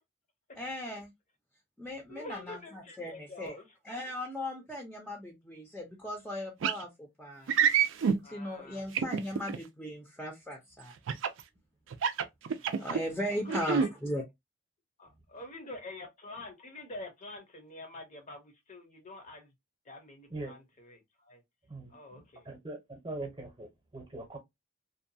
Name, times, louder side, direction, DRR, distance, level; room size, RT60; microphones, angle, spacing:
voice 1, 0.6-1.1 1.8-3.6 3.8-7.5 8.0-10.9 12.8-14.2, equal, 5° left, 0.5 m, -38 dB
voice 2, 2.1-4.0 8.2-8.8 12.6-13.0 13.4-13.9 15.0-19.5 19.9-21.4 21.9-22.5, left 2 dB, 40° left, 0.7 m, -47 dB
sound 1, 6.6-6.8 7.5-8.2 8.9-9.6 11.1-11.4 11.9-13.0 13.5-13.9, right 7 dB, 75° right, 0.4 m, -27 dB
voice 3, 21.7-24.4, right 2 dB, 25° right, 0.8 m, -42 dB
2.6 x 2.2 x 2.6 m
head